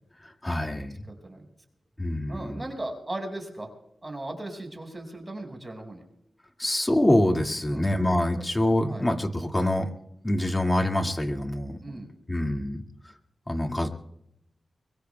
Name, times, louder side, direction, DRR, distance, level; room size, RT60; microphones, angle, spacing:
voice 1, 0.2-1.1 2.0-2.6 6.6-9.9 10.2-12.0 12.3-12.8 13.5-13.9, left 1 dB, 25° left, 3 dB, 2.1 m, -25 dB
voice 2, 2.3-3.7 4.0-6.0 7.7-7.9 8.9-9.0 11.8-12.1, right 1 dB, 30° right, 4 dB, 5.4 m, -37 dB
24.5 x 23.0 x 2.3 m, 0.81 s
cardioid pair, 45°, 0 cm